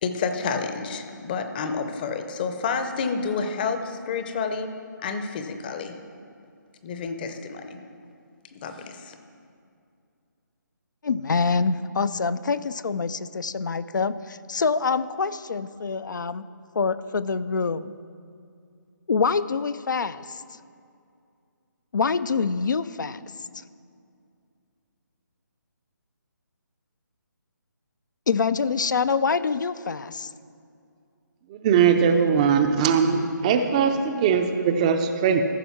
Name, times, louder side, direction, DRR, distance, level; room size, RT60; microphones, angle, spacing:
voice 1, 0.0-4.7 5.0-6.0 6.8-7.8 8.5-9.2, left 5 dB, 25° left, 8 dB, 0.7 m, -29 dB
voice 2, 11.0-16.4 16.7-17.9 19.1-20.4 21.9-23.2 23.6-23.7 28.3-30.3, left 5 dB, 65° left, 15 dB, 0.4 m, -25 dB
voice 3, 31.6-35.4, right 7 dB, 20° right, 7 dB, 0.5 m, -20 dB
14.0 x 5.4 x 5.7 m, 2.4 s
figure-of-eight pair, 150°, 11 cm